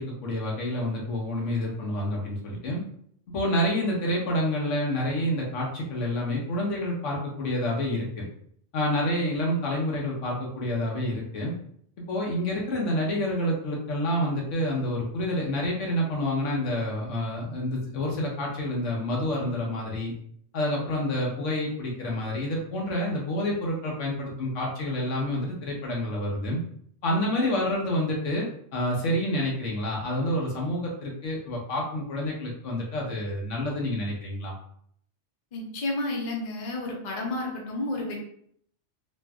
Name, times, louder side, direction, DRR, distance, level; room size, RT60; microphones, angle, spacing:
voice 1, 0.0-2.8 3.3-8.3 8.7-11.5 12.1-20.1 20.5-26.6 27.0-34.5, left 1 dB, 80° left, -2 dB, 1.2 m, -28 dB
voice 2, 35.5-38.1, left 2 dB, 45° left, -2 dB, 0.7 m, -31 dB
3.1 x 2.5 x 2.3 m, 0.65 s
omnidirectional pair, 1.2 m